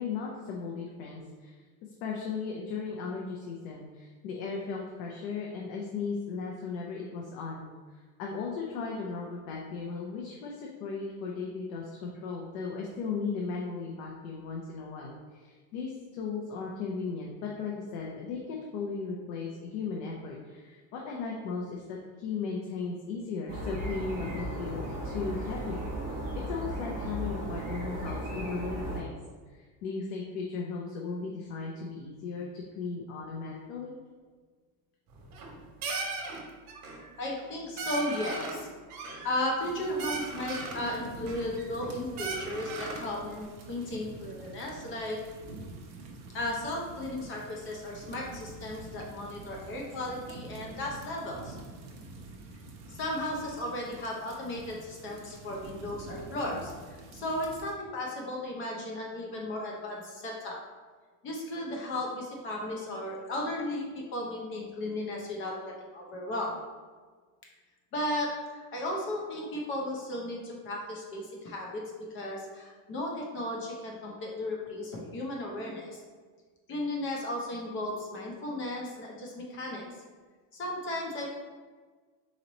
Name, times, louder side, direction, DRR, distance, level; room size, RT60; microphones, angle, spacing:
voice 1, 0.0-1.6 2.0-7.7 8.2-25.8 26.3-29.2 29.5-34.0 40.8-41.0 75.6-75.7, left 5 dB, 70° left, -1 dB, 0.7 m, -36 dB
sound 1, 23.5-29.0, right 1 dB, 20° right, 0.7 m, -36 dB
sound 2, 35.1-35.5 35.8-36.4 36.7-37.1 37.4-37.5 37.8-38.6 38.9-39.7 40.0-40.8 41.3-41.9 42.2-43.1, right 3 dB, 75° right, 1.2 m, -37 dB
voice 2, 37.2-38.7 39.2-45.2 46.3-51.6 52.9-56.7 57.1-60.6 61.2-63.8 64.1-66.6 67.9-71.8 72.1-76.0 76.7-79.8 80.5-81.3, left 1 dB, 30° left, -1 dB, 0.6 m, -35 dB
sound 3, 39.6-57.7, right 2 dB, 50° right, 0.8 m, -47 dB
4.2 x 3.1 x 3.9 m, 1.5 s
cardioid pair, 175°, 44 cm